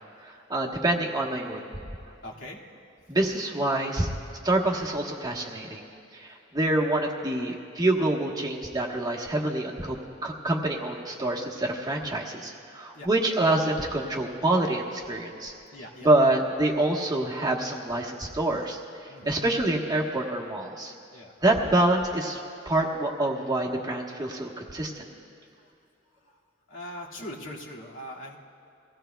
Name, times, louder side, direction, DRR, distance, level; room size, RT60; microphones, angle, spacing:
voice 1, 0.5-1.6 3.1-4.1 4.4-5.8 6.1-15.5 16.0-20.9 21.4-22.4 22.6-25.1, right 1 dB, 20° right, -1 dB, 1.2 m, -26 dB
voice 2, 2.2-2.6 12.9-13.1 15.7-16.3 19.1-19.3 21.1-21.3 26.7-28.4, left 1 dB, 75° left, -5 dB, 2.1 m, -41 dB
24.0 x 16.5 x 2.3 m, 2.6 s
head